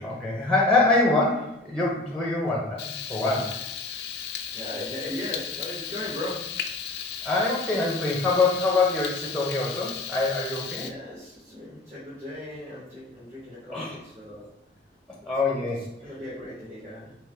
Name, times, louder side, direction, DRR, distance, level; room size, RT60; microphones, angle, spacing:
voice 1, 0.0-3.6 7.2-10.9 13.7-14.0 15.3-15.8, left 3 dB, 5° left, -2 dB, 0.5 m, -24 dB
Frying (food), 2.8-10.9, left 8 dB, 70° left, 0.3 m, -35 dB
voice 2, 4.5-6.5 10.8-14.5 15.7-17.1, left 1 dB, 40° right, -9 dB, 1.1 m, -37 dB
3.6 x 2.9 x 3.3 m, 0.82 s
head